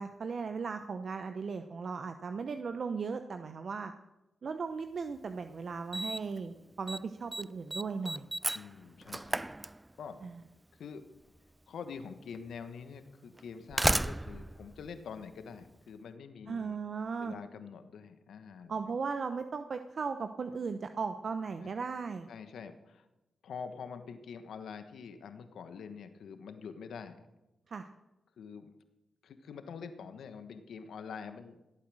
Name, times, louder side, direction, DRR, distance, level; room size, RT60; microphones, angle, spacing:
voice 1, 0.0-3.9 4.4-8.3 10.2-10.4 16.5-17.3 18.7-22.3 27.7-27.9, right 5 dB, 60° right, 8 dB, 0.8 m, -37 dB
Slam, 5.1-5.2 5.9-6.4 6.7-7.0 7.3-10.2 11.4-11.5 12.3-12.4 13.4-15.7, right 1 dB, 20° right, 0.4 m, -34 dB
voice 2, 8.5-9.4 10.0-10.2 10.7-11.0 11.7-16.8 17.2-18.7 21.6-21.7 22.3-23.1 23.4-27.2 28.4-28.7 29.2-31.6, left 6 dB, 80° left, 9 dB, 1.2 m, -45 dB
17.0 x 8.7 x 6.3 m, 0.97 s
supercardioid pair, 40°, 0 cm